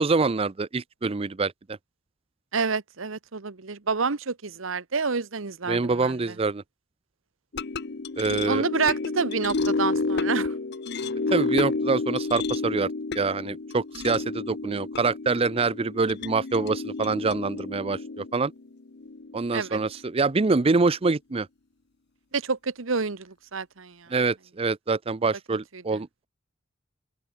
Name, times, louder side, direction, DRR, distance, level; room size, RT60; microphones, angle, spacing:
voice 1, 0.0-1.5 5.7-6.6 8.2-8.6 11.3-12.9 13.2-18.5 19.3-21.5 24.1-26.2, right 4 dB, 30° right, 0.5 m, -25 dB
voice 2, 2.5-6.3 8.5-10.5 19.5-19.8 22.3-24.1 25.7-26.0, right 4 dB, 85° right, 1.2 m, -28 dB
sound 1, 7.5-19.9, left 3 dB, 55° left, 0.8 m, -30 dB
head